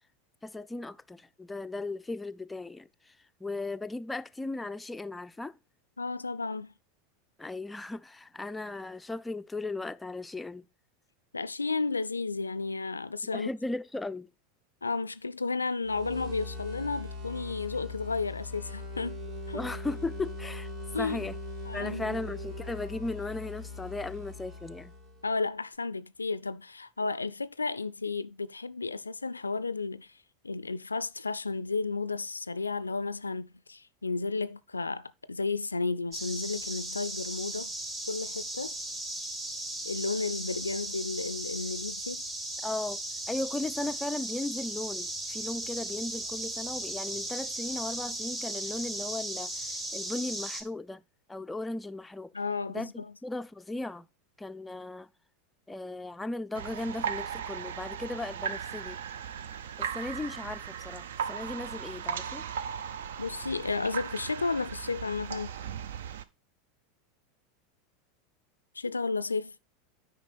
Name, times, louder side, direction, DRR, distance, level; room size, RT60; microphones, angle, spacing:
voice 1, 0.4-2.9 3.4-5.6 7.4-10.6 13.3-14.3 19.5-20.7 21.0-21.4 21.7-24.9 42.6-43.0 43.3-51.0 51.3-52.3 52.7-54.1 54.4-55.1 55.7-59.0 59.8-62.4, left 2 dB, 10° left, 0.4 m, -36 dB
voice 2, 6.0-6.7 11.3-13.5 14.8-19.2 19.5-19.7 20.9-21.2 21.6-22.2 25.2-30.1 30.4-37.7 38.1-38.7 39.8-42.2 52.3-53.1 63.2-65.5 68.8-69.5, left 4 dB, 90° left, 0.3 m, -33 dB
sound 1, 15.8-25.3, left 2 dB, 50° right, 3.0 m, -40 dB
sound 2, 36.1-50.6, right 1 dB, 25° right, 1.9 m, -37 dB
sound 3, 56.5-66.2, right 8 dB, 70° right, 0.5 m, -37 dB
9.0 x 5.0 x 4.2 m
figure-of-eight pair, 85°, 0 cm